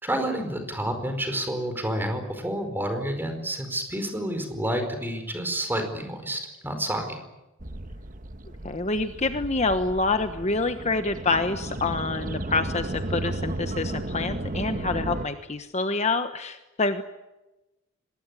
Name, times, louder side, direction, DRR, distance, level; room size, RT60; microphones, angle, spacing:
voice 1, 0.0-7.2, right 1 dB, 10° right, 6 dB, 4.8 m, -29 dB
sound 1, 7.6-15.3, right 1 dB, 40° right, 1.3 m, -34 dB
voice 2, 8.6-17.0, left 3 dB, 30° left, 8 dB, 1.2 m, -27 dB
25.5 x 20.5 x 9.8 m, 1.0 s
head